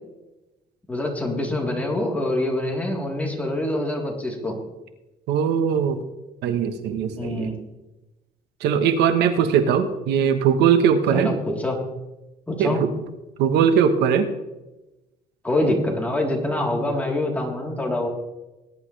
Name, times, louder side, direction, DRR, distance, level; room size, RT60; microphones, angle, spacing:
voice 1, 0.9-4.5 7.2-7.6 11.1-11.8 12.5-12.9 15.4-18.1, left 1 dB, 10° left, -2 dB, 3.6 m, -25 dB
voice 2, 5.3-6.0 6.4-7.5 8.6-11.3 12.6-12.9 13.4-14.2, right 7 dB, 85° right, 9 dB, 1.3 m, -20 dB
20.0 x 11.0 x 3.4 m, 1.0 s
cardioid pair, 110°, 17 cm